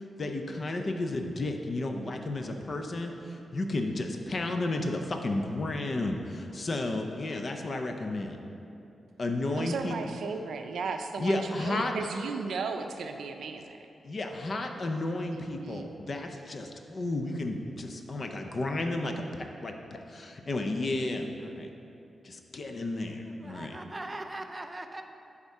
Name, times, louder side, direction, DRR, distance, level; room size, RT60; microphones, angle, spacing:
voice 1, 0.0-8.4 9.2-10.0 11.2-11.9 14.0-21.7 22.2-23.8, left 2 dB, 35° left, 4 dB, 0.5 m, -32 dB
voice 2, 9.5-13.8 15.2-15.9, right 4 dB, 85° right, 6 dB, 0.4 m, -35 dB
voice 3, 23.1-25.0, right 2 dB, 20° right, 6 dB, 0.4 m, -41 dB
8.0 x 3.6 x 5.4 m, 2.8 s
wide cardioid pair, 145°, 0 cm